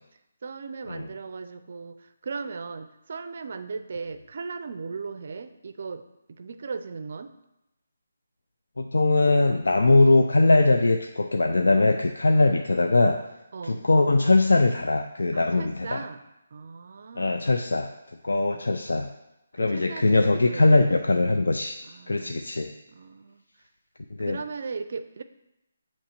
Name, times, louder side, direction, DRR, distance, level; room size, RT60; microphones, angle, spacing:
voice 1, 0.4-7.3 13.5-13.8 15.3-16.2 16.5-17.4 19.6-21.2 21.8-22.4 22.9-23.4 24.2-25.2, right 4 dB, 55° right, 10 dB, 0.4 m, -37 dB
voice 2, 8.8-13.2 13.6-16.0 17.2-17.9 18.2-19.1 19.6-21.7 22.1-22.7 24.2-24.4, left 2 dB, 85° left, 4 dB, 0.4 m, -21 dB
8.2 x 3.0 x 4.3 m, 0.91 s
hypercardioid pair, 160°, 0 cm